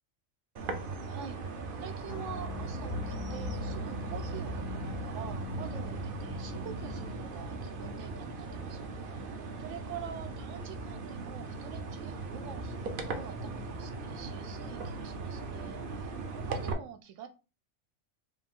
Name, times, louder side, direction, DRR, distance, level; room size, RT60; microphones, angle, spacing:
sound 1, 0.6-16.7, right 3 dB, 50° right, 0.8 m, -39 dB
voice 1, 1.1-1.5 1.8-9.2 9.6-17.3, right 8 dB, 80° right, 7 dB, 1.0 m, -46 dB
sound 2, 2.1-7.1, left 3 dB, 75° left, 1.1 m, -41 dB
5.0 x 2.4 x 3.6 m, 0.31 s
omnidirectional pair, 1.3 m